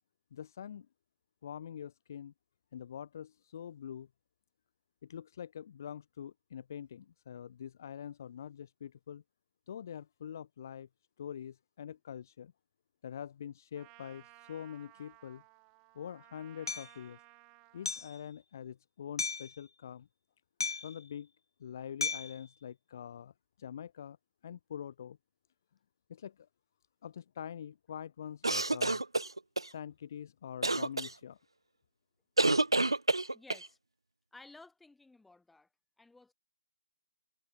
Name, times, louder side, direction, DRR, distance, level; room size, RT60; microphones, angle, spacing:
voice 1, 0.3-0.9 1.4-2.3 2.7-4.1 5.0-9.2 9.7-10.9 11.2-12.5 13.0-15.4 15.9-17.2 17.7-20.1 20.8-21.3 21.6-23.3 23.6-24.2 24.4-25.2 26.1-26.5 27.0-29.0 29.6-31.4, left 9 dB, 45° left, 3.2 m, -45 dB
Trumpet, 13.7-18.1, right 31 dB, 20° right, 2.8 m, -59 dB
Hammer, 16.7-16.9 17.9-18.2 19.2-19.5 20.6-21.0 22.0-22.4, left 4 dB, 70° left, 0.4 m, -35 dB
sound 1, 28.4-29.7 30.6-31.1 32.4-33.7, right 2 dB, 85° right, 0.9 m, -28 dB
voice 2, 33.3-33.8 34.3-35.7 36.0-36.3, left 3 dB, 5° left, 7.0 m, -56 dB
figure-of-eight pair, 145°, 2 cm